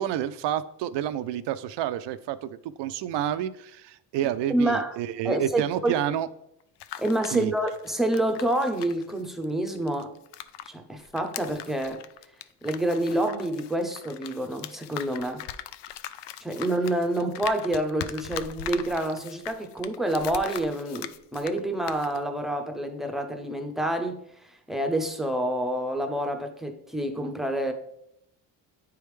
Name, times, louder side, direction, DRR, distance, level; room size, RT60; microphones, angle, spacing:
voice 1, 0.0-6.3 7.3-7.5, right 11 dB, 75° right, 0.5 m, -29 dB
voice 2, 4.5-4.9 5.2-6.0 7.0-10.2 10.6-12.0 12.6-15.5 16.4-27.7, right 1 dB, ahead, 0.6 m, -28 dB
sound 1, 6.6-10.7 11.0-21.6 21.9-22.2, left 11 dB, 70° left, 0.5 m, -40 dB
9.8 x 3.5 x 3.2 m
cardioid pair, 115°, 43 cm